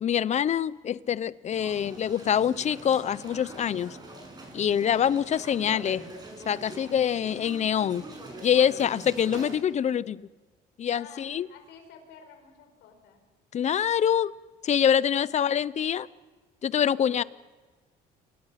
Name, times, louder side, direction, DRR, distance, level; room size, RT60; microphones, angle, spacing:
voice 1, 0.0-4.0 4.5-6.1 6.5-8.1 8.4-10.3 10.8-11.5 13.5-14.4 14.6-16.1 16.6-17.2, left 9 dB, 40° left, 0.8 m, -25 dB
sound 1, 1.5-9.6, right 1 dB, 25° right, 7.2 m, -44 dB
voice 2, 10.9-13.2 17.0-17.3, left 7 dB, 85° left, 5.3 m, -51 dB
28.5 x 20.5 x 5.9 m
cardioid pair, 110°, 17 cm